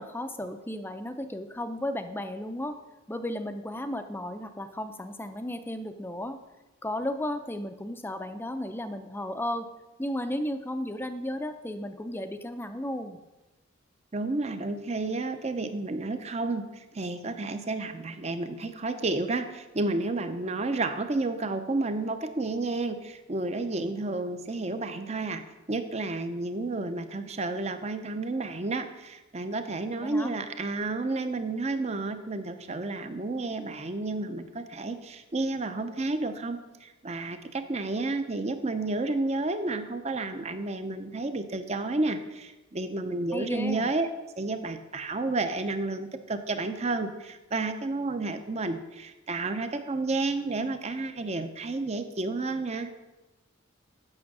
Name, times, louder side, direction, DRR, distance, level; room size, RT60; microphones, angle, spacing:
voice 1, 0.0-2.8 3.1-6.4 6.8-9.7 10.0-13.2 30.0-30.3 43.3-43.9, left 1 dB, 10° left, 8 dB, 0.5 m, -34 dB
voice 2, 14.1-25.4 25.7-44.1 44.4-52.9, right 2 dB, 30° right, 9 dB, 0.6 m, -31 dB
8.8 x 6.2 x 6.1 m, 1.1 s
head